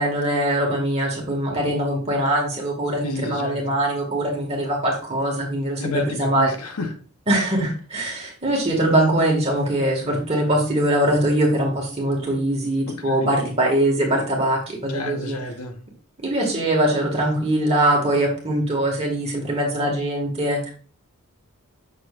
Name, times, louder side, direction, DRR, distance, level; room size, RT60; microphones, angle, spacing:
voice 1, 0.0-6.5 7.3-15.4 16.2-20.7, right 1 dB, 30° right, 1.8 m, -22 dB
voice 2, 3.0-3.8 5.8-7.0 12.9-13.3 14.9-15.8, left 2 dB, 80° left, 0.9 m, -30 dB
7.6 x 6.3 x 2.4 m
head